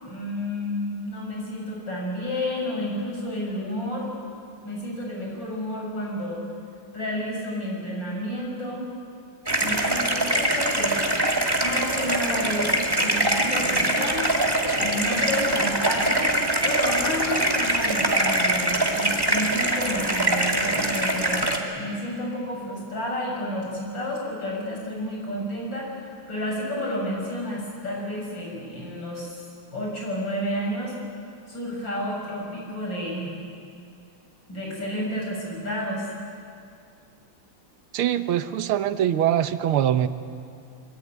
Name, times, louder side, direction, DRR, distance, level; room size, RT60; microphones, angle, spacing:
voice 1, 0.0-4.1 4.6-6.4 6.9-8.9 9.6-11.0 11.6-14.3 14.7-25.9 26.3-29.5 29.7-30.9 31.5-33.4 34.5-36.1, left 1 dB, 60° left, -2 dB, 7.7 m, -30 dB
sound 1, 9.5-21.6, right 1 dB, 10° right, 2.3 m, -23 dB
voice 2, 37.9-40.1, right 10 dB, 90° right, 11 dB, 1.8 m, -23 dB
24.0 x 23.5 x 9.4 m, 2.4 s
omnidirectional pair, 2.3 m